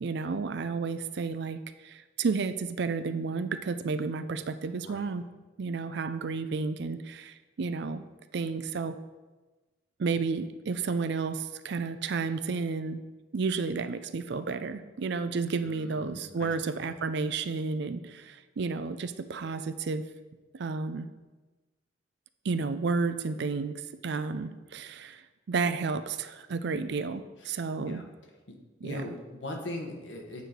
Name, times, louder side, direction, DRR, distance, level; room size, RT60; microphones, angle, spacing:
voice 1, 0.0-5.2 5.6-8.0 8.3-9.0 10.0-13.0 13.3-20.0 20.5-21.1 22.4-28.0 28.8-29.1, right 4 dB, 65° right, 11 dB, 0.4 m, -32 dB
voice 2, 15.6-16.8 27.5-27.6 27.9-28.1 28.5-28.6 28.8-30.5, left 1 dB, 75° left, 2 dB, 1.3 m, -40 dB
8.1 x 4.7 x 5.1 m, 1.2 s
head